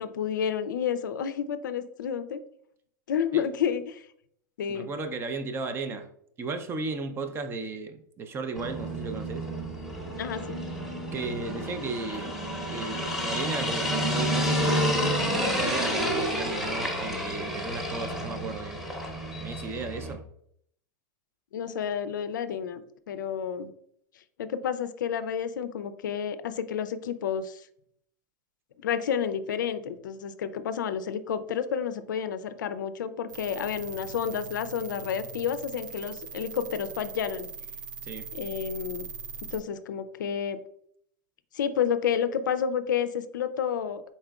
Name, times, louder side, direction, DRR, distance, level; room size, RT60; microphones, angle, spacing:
voice 1, 0.0-2.4 3.1-4.0 4.6-4.9 10.2-10.6 21.5-23.7 24.4-27.6 28.8-37.5 38.3-39.1 39.5-40.6 41.5-44.0, left 8 dB, 90° left, 0.4 m, -30 dB
voice 2, 4.7-6.1 6.4-9.5 11.1-12.4 12.7-18.8 19.4-20.2 38.0-38.3, right 3 dB, 25° right, 0.4 m, -35 dB
sound 1, 8.6-20.1, equal, 5° right, 0.8 m, -30 dB
sound 2, 33.3-39.6, right 6 dB, 80° right, 0.4 m, -41 dB
4.1 x 3.6 x 2.3 m
hypercardioid pair, 125°, 10 cm